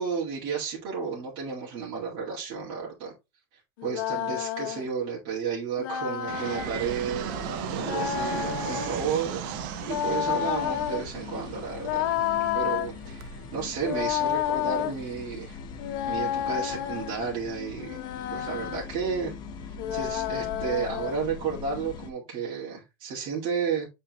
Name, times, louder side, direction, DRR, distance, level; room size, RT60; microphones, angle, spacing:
voice 1, 0.0-3.1 3.8-12.1 12.5-15.6 16.1-18.0 18.3-19.3 19.6-23.9, right 6 dB, 50° right, 2.4 m, -32 dB
sound 1, 3.8-4.9 5.8-6.7 7.8-9.0 9.8-11.0 11.8-12.9 13.8-14.9 15.8-17.2 17.8-18.9 19.8-21.2, left 11 dB, 70° left, 1.0 m, -30 dB
Fixed-wing aircraft airplane, 6.3-15.3, right 14 dB, 65° right, 0.6 m, -38 dB
sound 2, 6.6-22.1, left 6 dB, 40° left, 1.0 m, -42 dB
7.5 x 4.3 x 3.1 m
supercardioid pair, 155°, 12 cm